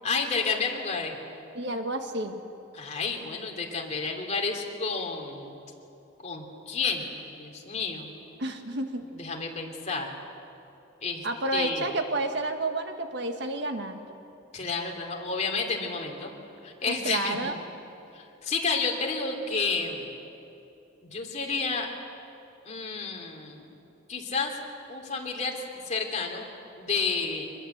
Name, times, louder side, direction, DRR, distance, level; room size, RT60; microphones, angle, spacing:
voice 1, 0.0-1.2 2.7-5.5 6.2-8.1 9.1-10.1 11.0-11.3 11.5-11.8 14.5-16.3 16.6-17.4 18.1-20.1 21.0-21.9 22.7-23.6 24.1-24.6 24.9-26.5 26.8-27.5, left 4 dB, 35° left, 1 dB, 2.9 m, -30 dB
voice 2, 1.5-2.4 8.4-9.1 11.2-14.0 16.9-17.6, right 2 dB, 60° right, 5 dB, 1.7 m, -30 dB
24.5 x 21.5 x 8.1 m, 2.9 s
head